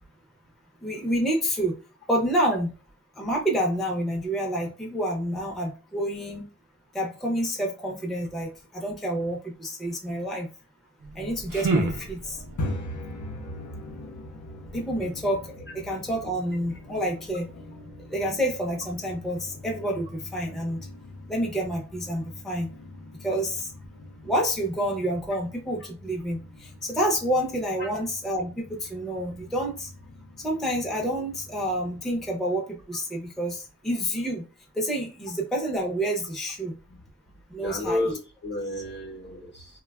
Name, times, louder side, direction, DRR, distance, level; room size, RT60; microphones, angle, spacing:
voice 1, 0.8-1.7 2.1-2.7 3.2-6.4 6.9-10.5 11.2-12.4 14.7-17.5 18.1-20.8 21.3-22.7 23.2-23.7 24.2-29.9 30.4-34.4 34.7-36.8 37.5-38.0, equal, ahead, -1 dB, 0.5 m, -28 dB
sound 1, 11.0-12.7, right 3 dB, 80° right, 0.6 m, -29 dB
sound 2, 12.4-32.3, left 1 dB, 70° left, 0.6 m, -42 dB
voice 2, 37.6-39.8, left 1 dB, 35° left, 2 dB, 0.8 m, -32 dB
3.3 x 2.2 x 2.3 m, 0.34 s
wide cardioid pair, 95°, 32 cm